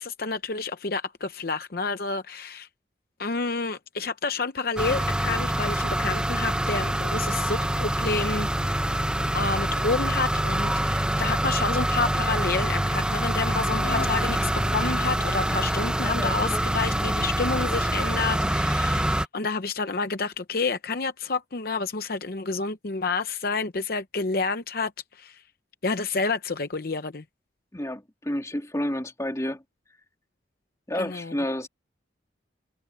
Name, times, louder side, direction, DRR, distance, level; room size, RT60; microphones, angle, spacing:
voice 1, 0.0-2.7 3.2-8.5 9.3-25.4 25.8-27.2 31.0-31.3, left 4 dB, 55° left, 0.7 m, -29 dB
sound 1, 4.8-19.3, right 1 dB, 5° right, 0.7 m, -25 dB
Laughter, 8.6-12.1 13.7-16.7 17.0-17.1, left 2 dB, 70° left, 2.8 m, -41 dB
voice 2, 27.7-29.6 30.9-31.7, left 1 dB, 15° left, 2.7 m, -30 dB
head